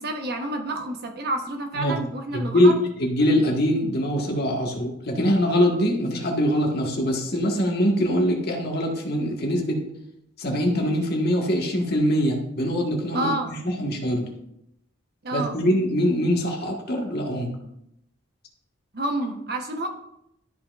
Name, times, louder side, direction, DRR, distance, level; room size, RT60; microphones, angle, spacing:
voice 1, 0.0-2.7 13.1-13.5 15.2-15.6 18.9-19.9, right 2 dB, 55° right, 4 dB, 1.1 m, -29 dB
voice 2, 2.3-2.7 3.0-9.8 10.4-14.3 15.3-17.5, equal, 55° left, 0 dB, 1.6 m, -23 dB
12.5 x 5.7 x 2.5 m, 0.80 s
head